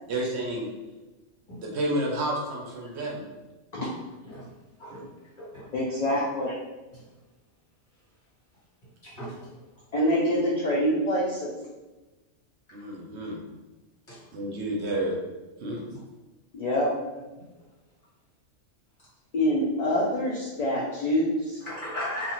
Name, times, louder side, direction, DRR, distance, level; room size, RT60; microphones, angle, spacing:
voice 1, 0.1-0.7 1.6-3.2 6.0-6.1 12.7-13.4 14.3-15.2 15.6-15.8, right 1 dB, 70° right, -2 dB, 0.9 m, -30 dB
voice 2, 5.7-6.5 9.9-11.5 16.5-16.9 19.3-21.6, equal, 60° left, -6 dB, 0.4 m, -25 dB
voice 3, 9.0-9.5 14.1-14.2 21.6-22.3, left 1 dB, 40° left, -9 dB, 1.5 m, -35 dB
2.5 x 2.4 x 3.0 m, 1.1 s
omnidirectional pair, 1.2 m